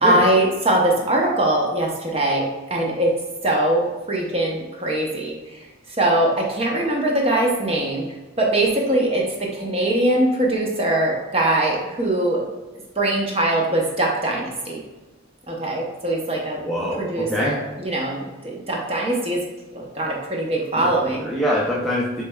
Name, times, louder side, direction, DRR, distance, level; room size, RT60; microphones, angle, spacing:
voice 1, 0.0-3.1 3.4-5.4 6.0-8.0 8.4-12.4 13.0-14.8 15.5-16.6 17.0-19.4 19.7-21.2, right 1 dB, 30° right, -1 dB, 0.8 m, -22 dB
voice 2, 16.6-17.6 20.8-20.9 21.2-22.2, equal, ahead, -6 dB, 0.4 m, -23 dB
6.5 x 3.3 x 2.3 m, 1.2 s
head